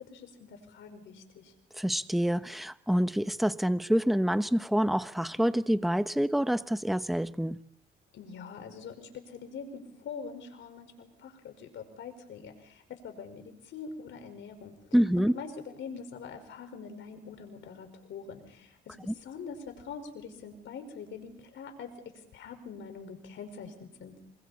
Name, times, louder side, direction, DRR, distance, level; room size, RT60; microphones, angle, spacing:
voice 1, 0.0-1.5 8.1-14.8 15.2-21.9 22.3-24.1, left 5 dB, 70° left, 5.1 m, -44 dB
voice 2, 1.7-7.6 14.9-15.3 19.1-19.2, equal, ahead, 1.0 m, -27 dB
27.5 x 24.0 x 4.3 m
cardioid pair, 90°, 20 cm